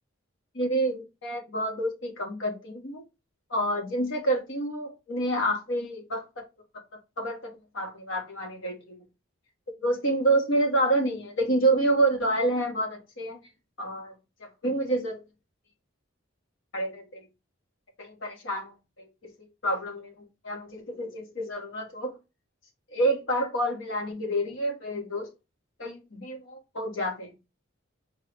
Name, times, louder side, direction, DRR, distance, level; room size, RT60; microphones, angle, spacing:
voice 1, 0.5-3.0 3.5-6.5 7.2-9.0 9.8-13.4 13.8-14.1 14.6-15.2 16.7-17.2 18.0-18.7 19.2-20.1 20.4-22.2 22.9-25.3 25.8-27.3, right 1 dB, 65° left, 1.4 m, -28 dB
4.6 x 3.0 x 3.4 m
head